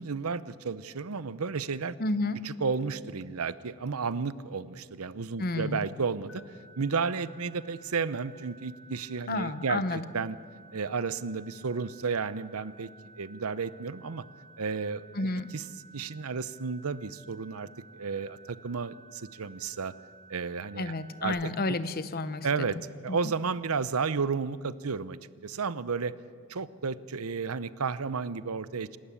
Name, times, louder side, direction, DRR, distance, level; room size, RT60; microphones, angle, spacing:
voice 1, 0.0-2.0 2.4-10.4 10.7-12.9 13.2-14.2 14.6-15.6 15.9-19.9 20.3-20.9 21.2-21.8 22.4-22.8 23.0-26.1 26.5-28.9, right 5 dB, 80° right, 16 dB, 0.7 m, -32 dB
voice 2, 2.0-2.4 5.4-5.8 9.3-10.0 15.1-15.5 20.8-22.7, left 2 dB, 45° left, 13 dB, 0.9 m, -31 dB
sound 1, 6.3-21.2, right 2 dB, 85° left, 4.3 m, -55 dB
27.5 x 13.0 x 8.4 m, 2.2 s
head